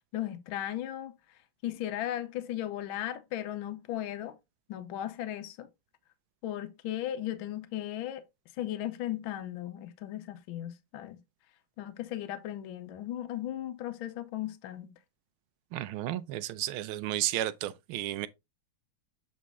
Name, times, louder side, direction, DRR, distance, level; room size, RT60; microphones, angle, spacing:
voice 1, 0.1-1.1 1.6-4.4 4.7-5.7 6.4-8.2 8.6-11.2 11.8-14.9, left 12 dB, 75° left, 1.5 m, -36 dB
voice 2, 15.7-18.3, right 14 dB, 85° right, 1.5 m, -33 dB
7.5 x 4.1 x 3.5 m
omnidirectional pair, 2.3 m